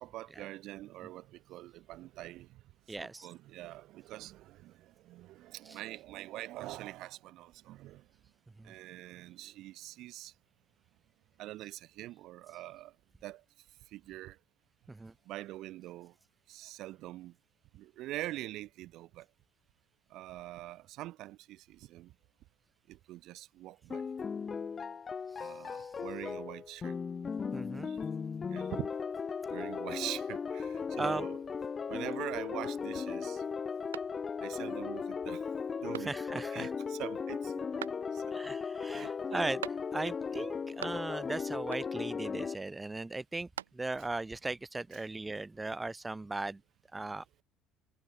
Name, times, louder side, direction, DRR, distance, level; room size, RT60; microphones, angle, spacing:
voice 1, 0.0-2.6 3.0-8.0 8.6-10.3 11.4-12.9 13.2-13.4 13.9-14.4 15.3-16.1 16.5-17.3 17.7-19.2 20.1-22.1 22.9-24.1 25.4-27.0 27.9-28.0 28.5-28.9 29.5-31.4 31.9-33.4 34.4-35.4 35.8-37.9 38.1-38.3 38.9-39.4 40.3-40.4 44.0-44.1 44.9-45.0, right 16 dB, 65° right, 1.4 m, -44 dB
voice 2, 2.9-3.3 14.9-15.1 25.8-25.9 27.5-27.9 31.0-31.2 36.0-36.7 38.3-39.6 39.9-43.5 43.8-46.6 46.9-47.2, right 2 dB, 15° right, 0.8 m, -37 dB
sound 1, 23.9-42.6, left 6 dB, 35° left, 3.5 m, -37 dB
sound 2, 33.9-34.6 35.0-35.1 35.9-36.5 37.8-38.4 39.6-40.2 40.5-41.3 41.7-42.2 43.2-44.1, right 11 dB, 90° right, 0.8 m, -45 dB
hypercardioid pair, 60°, 0 cm